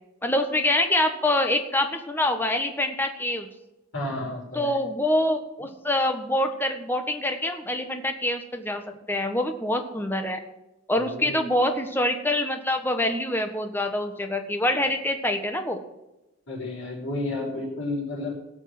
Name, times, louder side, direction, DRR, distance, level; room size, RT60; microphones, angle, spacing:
voice 1, 0.2-3.5 4.5-10.4 10.9-15.8, left 1 dB, 10° left, 5 dB, 1.3 m, -25 dB
voice 2, 3.9-4.8 11.0-11.4 16.5-18.3, left 2 dB, 75° left, -8 dB, 4.9 m, -31 dB
17.5 x 6.4 x 7.8 m, 0.94 s
head